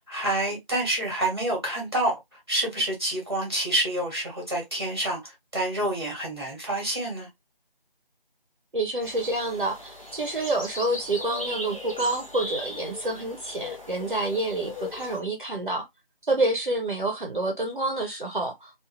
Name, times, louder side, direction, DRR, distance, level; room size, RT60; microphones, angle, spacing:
voice 1, 0.1-7.3, right 1 dB, 25° right, 1.1 m, -28 dB
voice 2, 8.7-15.9 16.3-18.7, right 2 dB, 60° right, 0.7 m, -28 dB
sound 1, 9.0-15.2, left 2 dB, 35° left, 0.8 m, -38 dB
2.6 x 2.3 x 2.2 m
figure-of-eight pair, 170°, 29 cm